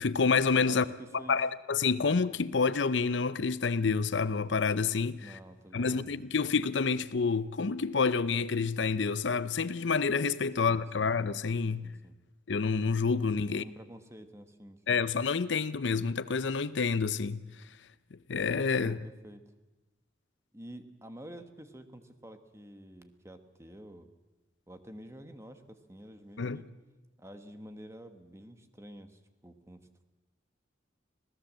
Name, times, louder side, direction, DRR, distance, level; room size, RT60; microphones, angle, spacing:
voice 1, 0.0-0.8 1.3-5.4 5.7-11.9 12.5-13.6 14.9-17.4 18.3-19.0 26.4-26.6, left 5 dB, 70° left, 0.6 m, -28 dB
voice 2, 0.7-1.4 5.2-6.1 10.6-11.1 11.8-12.2 13.4-15.0 18.8-19.4 20.5-24.1 24.7-26.7 27.2-30.0, right 1 dB, 15° right, 1.4 m, -49 dB
26.0 x 17.0 x 7.5 m
head